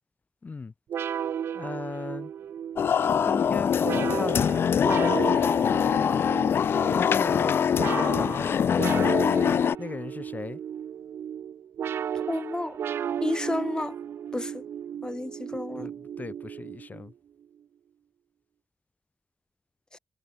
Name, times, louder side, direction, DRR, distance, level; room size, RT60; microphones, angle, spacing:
voice 1, 0.4-0.7 1.5-2.3 3.3-4.6 4.8-6.2 6.9-9.2 9.8-10.6 15.8-17.1, left 4 dB, 45° left, 1.6 m, -36 dB
sound 1, 0.9-17.1, right 9 dB, 90° right, 2.3 m, -34 dB
sound 2, 2.8-9.7, left 8 dB, 75° left, 0.5 m, -23 dB
voice 2, 12.1-12.8 13.2-13.9 14.3-14.6 15.0-15.9, left 2 dB, 20° left, 1.6 m, -31 dB
cardioid pair, 60°, 4 cm